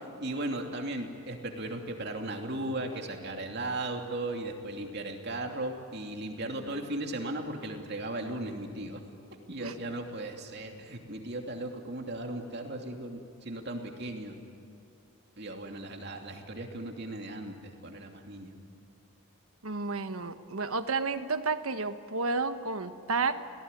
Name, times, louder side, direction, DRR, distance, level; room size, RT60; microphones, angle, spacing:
voice 1, 0.0-9.0 9.5-14.4 15.4-18.6, right 1 dB, 50° right, 2 dB, 2.8 m, -37 dB
voice 2, 19.6-23.3, right 4 dB, 80° right, 9 dB, 1.3 m, -31 dB
29.5 x 19.0 x 9.9 m, 2.6 s
head